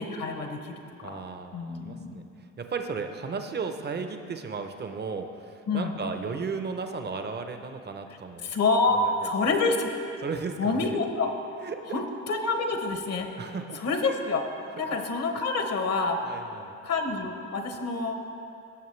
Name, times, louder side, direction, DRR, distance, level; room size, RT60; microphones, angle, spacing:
voice 1, 0.0-1.2 1.5-2.2 5.7-6.0 8.4-10.0 10.6-11.3 11.9-13.3 13.7-14.5 14.8-16.2 16.8-18.2, left 3 dB, 55° left, 5 dB, 1.1 m, -27 dB
voice 2, 1.0-2.2 2.6-8.5 9.0-9.1 10.2-10.9 11.6-12.0 13.4-13.9 14.8-14.9 16.2-16.8, right 5 dB, 35° right, 6 dB, 0.8 m, -35 dB
17.0 x 6.4 x 3.3 m, 2.6 s
cardioid pair, 90°, 30 cm